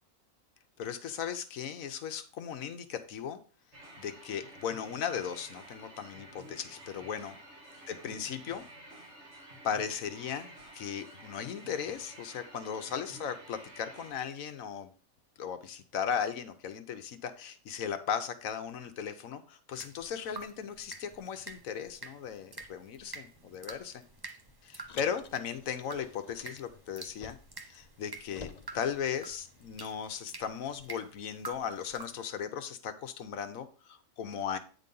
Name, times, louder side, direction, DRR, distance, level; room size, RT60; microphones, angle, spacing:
voice 1, 0.8-3.4 4.0-7.4 7.9-8.6 9.6-14.9 15.4-24.0 24.6-27.4 27.7-34.6, left 7 dB, 65° left, 9 dB, 1.1 m, -37 dB
sound 1, 3.7-14.1, right 1 dB, 50° right, 1.9 m, -51 dB
sound 2, 19.7-32.2, right 3 dB, 25° right, 0.5 m, -49 dB
Car, 24.9-27.7 27.9-29.8, left 5 dB, 50° left, 0.5 m, -50 dB
9.1 x 4.0 x 5.4 m, 0.37 s
omnidirectional pair, 1.6 m